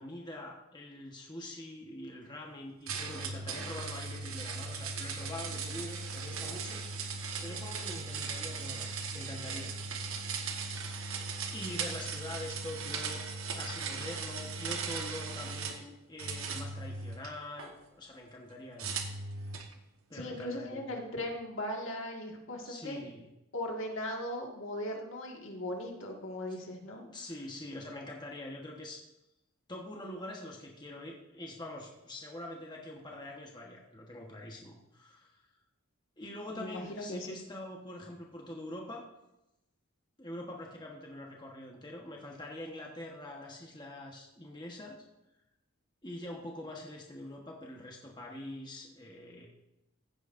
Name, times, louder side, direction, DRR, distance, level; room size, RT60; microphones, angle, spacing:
voice 1, 0.0-6.8 7.4-9.7 10.7-18.9 20.1-20.9 22.6-23.3 27.0-29.0 29.7-35.4 36.2-39.0 40.2-45.0 46.0-49.5, left 1 dB, 20° left, -1 dB, 1.2 m, -44 dB
sound 1, 2.9-15.8 16.2-17.7 18.8-19.7, right 4 dB, 70° right, 1.2 m, -38 dB
voice 2, 20.1-23.0 23.5-27.0 36.5-37.4, left 1 dB, 60° left, 1 dB, 1.8 m, -38 dB
15.5 x 9.4 x 2.6 m, 0.91 s
head